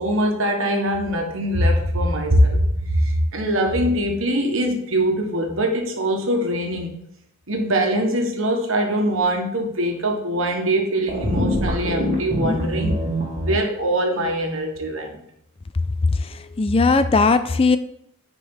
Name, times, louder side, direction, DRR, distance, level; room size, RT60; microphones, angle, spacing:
voice 1, 0.0-6.9 7.5-13.0 13.4-15.1, equal, 60° right, 2 dB, 1.5 m, -22 dB
sound 1, 11.1-13.5, equal, 35° right, 1.6 m, -24 dB
voice 2, 16.1-17.8, left 4 dB, 25° left, 11 dB, 0.3 m, -18 dB
9.7 x 5.2 x 3.9 m, 0.73 s
head